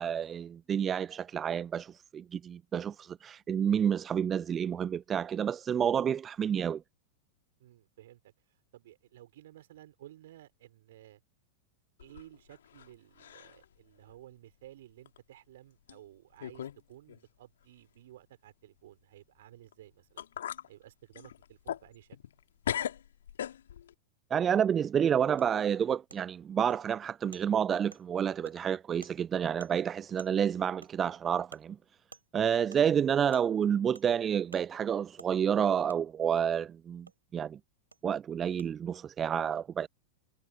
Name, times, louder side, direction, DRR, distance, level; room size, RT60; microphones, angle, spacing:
voice 1, 0.0-6.8 24.3-31.8 32.3-37.6 38.0-39.9, right 8 dB, 25° right, 0.3 m, -29 dB
voice 2, 7.6-8.3 8.7-11.2 12.0-20.2 20.7-22.2, right 13 dB, 55° right, 5.0 m, -54 dB
sound 1, 12.0-12.9 13.2-13.6 14.1-14.2 15.0-15.2 15.9-16.0 16.4-16.8 17.1-17.2 19.7-19.8 20.2-20.7 21.1-22.4 22.6-23.9, left 10 dB, 65° left, 3.2 m, -38 dB
Wood, 25.4-25.5 26.1-26.2 26.7-26.8 27.3-27.4 27.9-28.0 28.4-28.6 29.0-29.2 29.6-29.7 30.2-30.3 30.8-30.9 31.5-31.6 32.1-32.2 32.7-32.8 33.3-33.4 33.9-34.1 34.5-34.6 35.2-35.3 35.9-36.0 37.1-37.2 37.9-38.0 38.6-38.7, right 4 dB, 80° right, 3.7 m, -52 dB
figure-of-eight pair, 90°, 0 cm